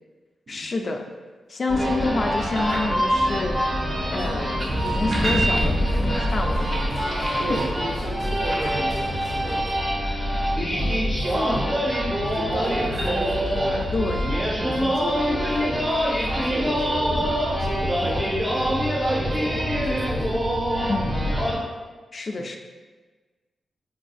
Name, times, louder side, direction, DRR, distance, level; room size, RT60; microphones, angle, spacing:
voice 1, 0.5-1.0 1.5-3.6 4.1-4.5 4.8-6.8 13.9-14.3 14.8-15.0 20.9-21.4 22.1-22.6, left 3 dB, 50° left, 3 dB, 0.3 m, -28 dB
sound 1, 1.7-21.6, equal, 20° right, 0.7 m, -24 dB
sound 2, 2.2-3.5 4.9-6.8 8.9-10.6 12.0-14.1 16.8-16.9, right 2 dB, 90° right, 1.5 m, -33 dB
sound 3, 4.2-9.7, equal, 10° left, 0.7 m, -42 dB
voice 2, 7.4-9.6 10.7-11.9 12.2-13.9 14.6-20.5 22.4-22.5, right 2 dB, 60° right, -1 dB, 0.6 m, -34 dB
4.0 x 2.5 x 2.3 m, 1.3 s
cardioid pair, 60°, 0 cm